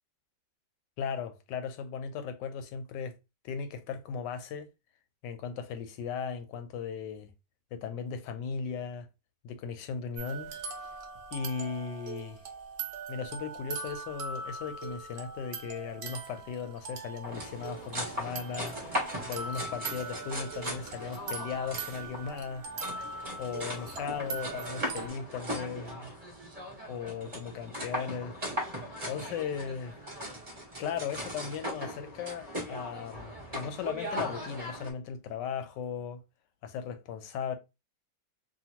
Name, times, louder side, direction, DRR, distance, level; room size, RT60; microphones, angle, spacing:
voice 1, 1.0-3.2 3.4-4.7 5.2-7.3 7.7-9.1 9.4-10.5 11.3-12.4 13.1-22.7 23.4-26.1 26.9-28.7 29.0-30.0 30.8-36.2 36.6-37.6, left 6 dB, 85° left, 1.2 m, -37 dB
sound 1, 10.2-25.1, right 4 dB, 80° right, 0.5 m, -41 dB
sound 2, 17.2-34.9, equal, 25° right, 1.2 m, -39 dB
2.7 x 2.6 x 2.8 m
omnidirectional pair, 1.9 m